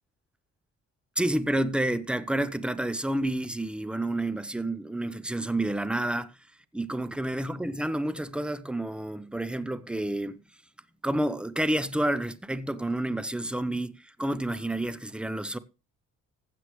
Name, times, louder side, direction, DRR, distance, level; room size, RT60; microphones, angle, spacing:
voice 1, 1.2-6.3 6.7-10.4 11.0-15.6, right 1 dB, 5° right, 0.8 m, -29 dB
15.5 x 7.8 x 3.2 m
cardioid pair, 90°, 30 cm